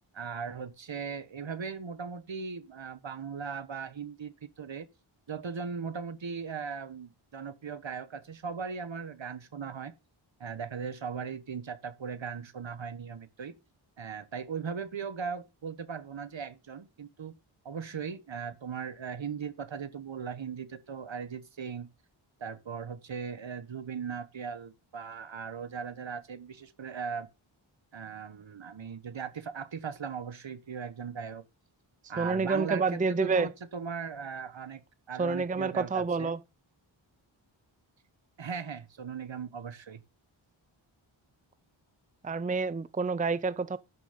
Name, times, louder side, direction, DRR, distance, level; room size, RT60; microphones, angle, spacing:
voice 1, 0.1-4.9 5.3-9.9 10.4-13.5 14.0-17.3 17.6-21.9 22.4-27.3 27.9-31.4 32.1-34.8 35.1-36.3 38.4-40.0, right 6 dB, 65° right, 1.4 m, -38 dB
voice 2, 32.2-33.5 35.2-36.4 42.2-43.8, right 4 dB, 15° right, 0.5 m, -28 dB
12.5 x 6.3 x 5.3 m
wide cardioid pair, 85°, 48 cm